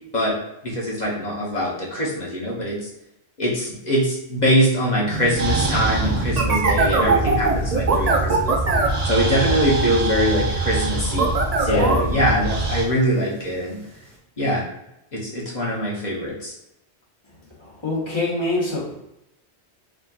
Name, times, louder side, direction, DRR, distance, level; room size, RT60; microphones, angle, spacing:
voice 1, 0.6-2.9 3.4-8.6 9.0-13.8 14.4-14.6 15.1-16.5, equal, 40° left, -5 dB, 1.1 m, -23 dB
sound 1, 5.1-14.2, right 3 dB, 80° right, 1.5 m, -35 dB
sound 2, 5.4-12.8, right 3 dB, 45° right, 0.7 m, -22 dB
voice 2, 11.7-12.0 17.6-18.9, left 2 dB, 25° left, -5 dB, 1.2 m, -24 dB
4.2 x 3.7 x 2.4 m, 0.86 s
omnidirectional pair, 1.1 m